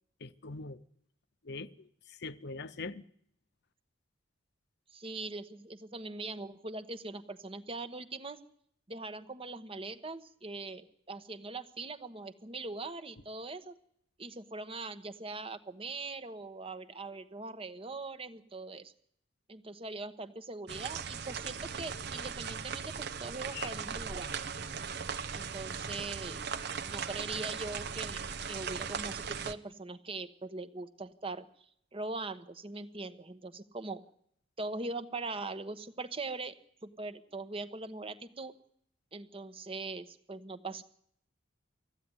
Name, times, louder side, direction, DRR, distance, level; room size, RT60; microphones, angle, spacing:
voice 1, 0.2-0.8 1.4-3.0 23.5-23.7, left 4 dB, 55° left, 0.8 m, -42 dB
voice 2, 4.9-8.4 8.9-13.7 14.2-18.9 19.5-24.3 25.3-26.4 26.8-31.4 31.9-34.0 34.6-36.5 36.8-38.5 39.1-40.8, right 3 dB, 30° right, 1.2 m, -41 dB
sound 1, 20.7-29.5, right 6 dB, 55° right, 0.9 m, -38 dB
20.5 x 14.5 x 9.8 m
head